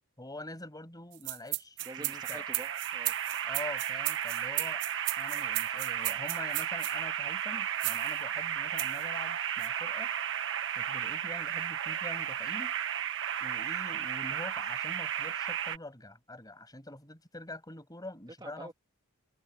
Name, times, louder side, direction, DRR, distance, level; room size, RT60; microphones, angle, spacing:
voice 1, 0.2-2.5 3.4-4.8 5.2-10.1 10.8-12.7 13.4-18.7, left 2 dB, 15° left, 6.8 m, -45 dB
sound 1, 1.1-7.0 7.8-8.1 8.8-9.0 9.6-9.7, right 21 dB, 80° right, 0.4 m, -35 dB
voice 2, 1.8-3.1 18.4-18.7, right 2 dB, 20° right, 2.3 m, -47 dB
sound 2, 1.8-15.8, right 9 dB, 60° right, 1.6 m, -34 dB
head